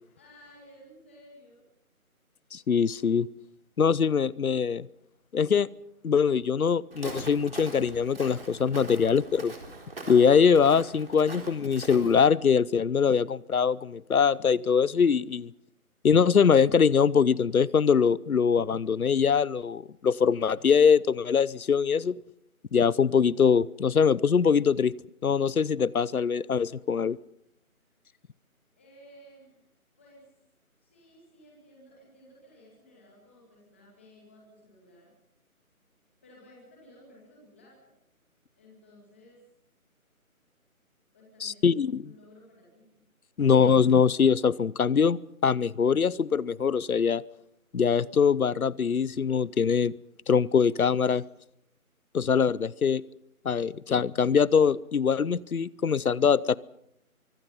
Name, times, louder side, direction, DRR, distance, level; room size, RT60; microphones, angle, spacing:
voice 1, 0.2-1.6 28.8-29.6 30.0-30.3 30.8-35.1 36.2-37.9 38.6-39.4 41.1-43.0, equal, 10° left, -4 dB, 2.2 m, -55 dB
voice 2, 2.5-3.3 3.8-4.9 5.3-5.7 6.0-9.5 10.1-15.5 16.0-22.2 22.7-24.9 25.2-27.2 41.4-42.0 43.4-47.2 47.7-49.9 50.3-51.2 52.1-53.0 53.4-56.6, left 6 dB, 75° left, 23 dB, 0.9 m, -23 dB
Walk footsteps, 6.9-12.3, right 2 dB, 40° right, 3.8 m, -42 dB
24.5 x 24.0 x 5.6 m, 0.79 s
figure-of-eight pair, 175°, 43 cm